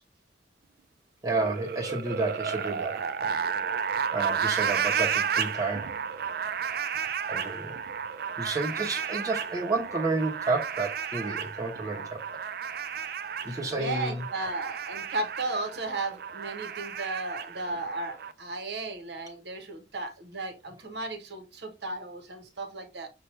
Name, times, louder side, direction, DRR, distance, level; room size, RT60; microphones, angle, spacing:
voice 1, 1.2-3.4 4.1-6.0 7.3-7.7 8.4-12.2 13.4-14.3, right 3 dB, 20° right, 1.1 m, -31 dB
sound 1, 1.3-18.3, right 7 dB, 60° right, 0.4 m, -32 dB
voice 2, 13.5-23.1, right 2 dB, 75° right, 1.2 m, -35 dB
5.8 x 2.6 x 3.2 m
head